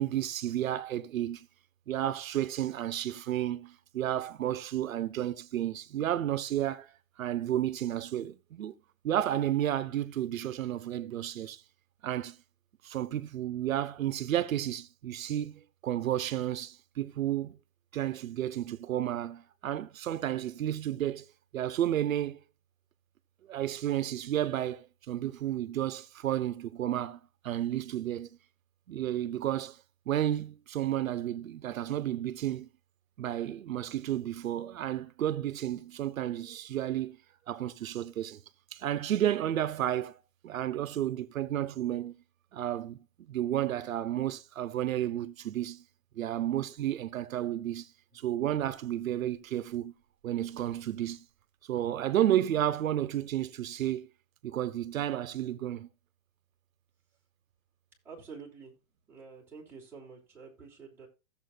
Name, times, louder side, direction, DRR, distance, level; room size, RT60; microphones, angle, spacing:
voice 1, 0.0-1.5 1.9-8.7 9.0-11.6 12.0-12.4 12.8-17.6 17.9-21.3 21.5-22.4 23.5-28.3 28.9-29.8 30.1-32.7 33.2-37.2 37.5-38.4 38.7-40.2 40.4-42.2 42.5-45.8 46.2-49.9 50.2-51.2 51.7-54.1 54.4-55.9, right 12 dB, 80° right, 0.9 m, -32 dB
voice 2, 58.0-58.7 59.1-61.1, right 5 dB, 5° right, 3.3 m, -48 dB
16.0 x 7.5 x 2.2 m
hypercardioid pair, 170°, 40 cm